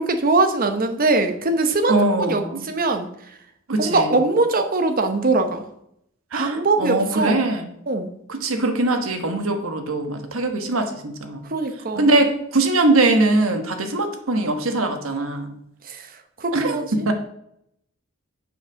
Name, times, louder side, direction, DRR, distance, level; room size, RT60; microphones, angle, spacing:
voice 1, 0.0-3.1 3.8-5.6 6.3-7.4 7.9-8.1 11.4-12.1 15.8-17.1, right 3 dB, 45° right, 7 dB, 0.9 m, -22 dB
voice 2, 1.9-2.6 3.7-4.1 6.3-7.7 8.3-11.4 11.9-15.5 16.5-17.1, right 2 dB, 75° right, 6 dB, 1.3 m, -21 dB
7.4 x 5.7 x 6.3 m, 0.75 s
head